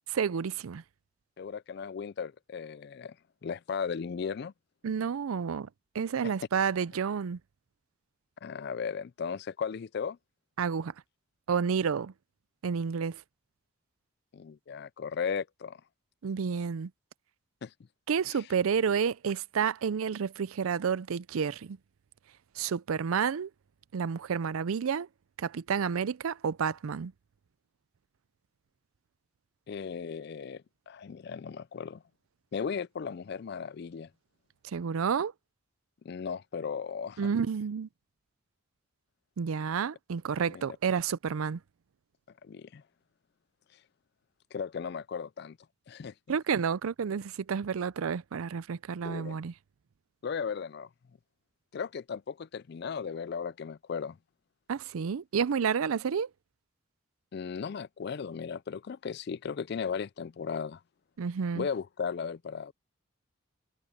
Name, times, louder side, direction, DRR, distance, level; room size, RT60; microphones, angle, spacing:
voice 1, 0.1-0.8 4.8-5.7 5.9-7.4 10.6-10.9 11.5-12.1 12.6-13.2 16.2-16.9 18.1-21.8 22.6-23.5 23.9-25.1 25.4-27.1 34.7-35.3 37.2-37.9 39.4-41.6 46.3-49.5 54.7-56.3 61.2-61.7, right 6 dB, 80° right, 0.4 m, -30 dB
voice 2, 1.4-3.2 3.4-4.5 6.2-6.3 8.4-10.2 14.3-15.8 17.6-17.7 18.3-18.4 29.7-32.0 32.5-34.1 36.0-37.3 40.5-40.7 42.4-42.8 44.5-45.6 45.9-46.1 49.0-49.4 50.2-50.9 51.7-54.2 57.3-60.8 61.5-62.7, left 6 dB, 50° left, 0.3 m, -36 dB
head